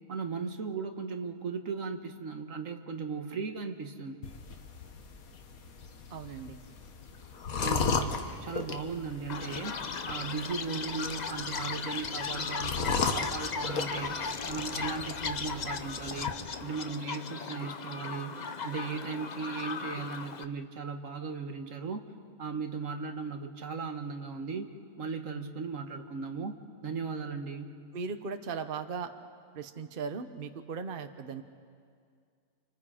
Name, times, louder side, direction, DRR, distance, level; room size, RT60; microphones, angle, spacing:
voice 1, 0.1-4.2 7.6-9.8 10.1-14.2 14.5-16.3 16.6-18.4 18.6-22.0 22.4-24.7 25.0-27.8, right 5 dB, 60° right, 5 dB, 1.7 m, -37 dB
Drink slurping sound from a cup, 4.2-16.3, left 5 dB, 70° left, 1.6 m, -36 dB
voice 2, 6.1-6.6 27.9-29.1 29.5-31.4, right 5 dB, 40° right, 8 dB, 1.0 m, -37 dB
Chirp tweet, 9.3-20.4, left 5 dB, 40° left, 0.6 m, -37 dB
30.0 x 27.0 x 5.0 m, 2.2 s
omnidirectional pair, 1.6 m